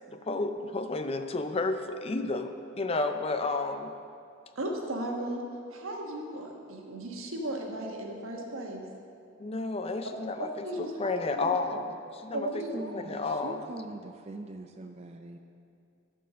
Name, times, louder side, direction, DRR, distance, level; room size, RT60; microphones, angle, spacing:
voice 1, 0.1-3.9 9.4-13.6, left 3 dB, 30° left, 8 dB, 0.4 m, -32 dB
voice 2, 4.5-5.4 5.7-8.8 10.4-11.1 11.4-11.6 12.3-12.9, right 1 dB, 85° right, 1 dB, 1.4 m, -35 dB
voice 3, 12.7-15.4, right 2 dB, 30° right, 4 dB, 0.4 m, -42 dB
13.5 x 4.5 x 6.2 m, 2.4 s
head